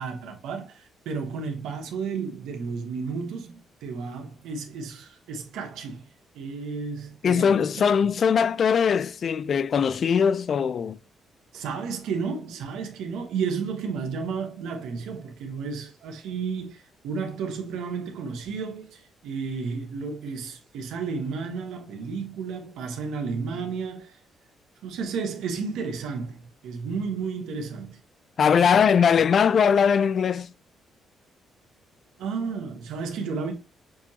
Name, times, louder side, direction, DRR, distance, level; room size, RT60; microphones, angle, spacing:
voice 1, 0.0-6.1 6.3-7.6 8.0-8.1 11.5-24.2 24.8-28.0 32.2-33.5, right 5 dB, 85° right, 1.2 m, -32 dB
voice 2, 7.2-11.0 28.4-30.5, left 7 dB, 55° left, 0.4 m, -21 dB
6.1 x 2.9 x 2.8 m
cardioid pair, 90°, 0 cm